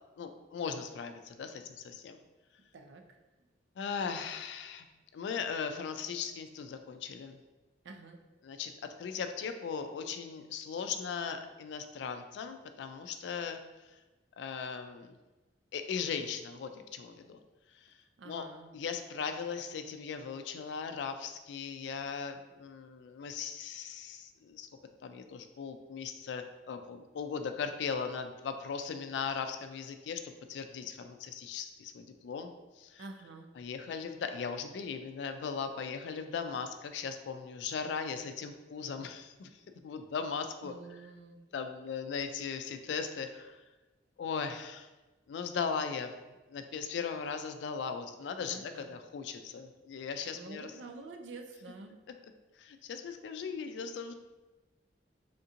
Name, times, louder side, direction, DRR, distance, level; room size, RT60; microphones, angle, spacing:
voice 1, 0.2-2.2 3.8-4.9 5.1-7.4 8.4-8.7 9.0-13.6 14.4-15.1 15.7-17.4 17.7-17.9 18.3-18.5 18.7-24.7 25.0-32.5 32.8-33.0 33.6-39.5 39.8-40.7 41.5-43.6 44.2-44.9 45.3-46.1 46.5-50.7 52.6-54.1, left 6 dB, 75° left, 7 dB, 0.3 m, -38 dB
voice 2, 2.7-3.0 7.8-8.2 18.2-18.7 33.0-33.5 40.6-41.4 48.5-48.9 50.3-51.9, right 3 dB, 90° right, 4 dB, 0.4 m, -48 dB
3.5 x 2.7 x 2.5 m, 1.1 s
head